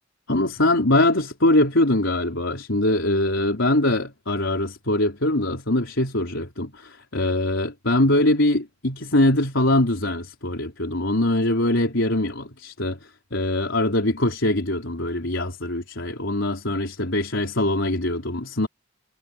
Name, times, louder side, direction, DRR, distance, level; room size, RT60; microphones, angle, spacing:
voice 1, 0.3-18.7, left 1 dB, 80° left, 4.0 m, -22 dB
head